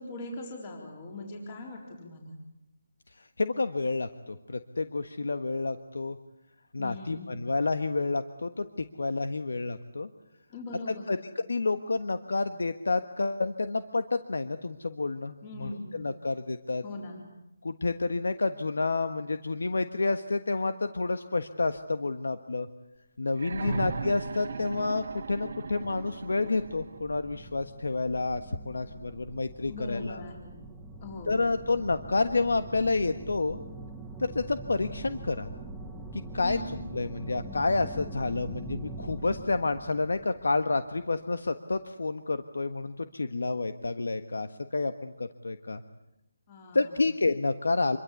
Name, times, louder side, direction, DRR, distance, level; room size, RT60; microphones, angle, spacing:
voice 1, 0.0-2.4 6.8-7.4 10.5-11.2 15.4-15.9 16.8-17.2 23.6-23.9 29.7-30.6 31.0-31.5 36.4-36.7 46.5-46.9, left 2 dB, 20° left, 0 dB, 4.0 m, -40 dB
voice 2, 3.2-6.2 6.7-10.1 11.1-16.8 17.6-22.7 23.2-30.2 31.3-33.6 34.2-35.5 36.1-36.6 36.9-45.8 46.7-48.0, left 3 dB, 85° left, 9 dB, 1.4 m, -29 dB
sound 1, 23.3-27.1 28.4-28.5, right 4 dB, 45° right, 1.4 m, -37 dB
sound 2, 25.1-41.2, right 2 dB, ahead, 1.1 m, -44 dB
27.0 x 23.0 x 8.4 m, 0.92 s
hypercardioid pair, 175°, 0 cm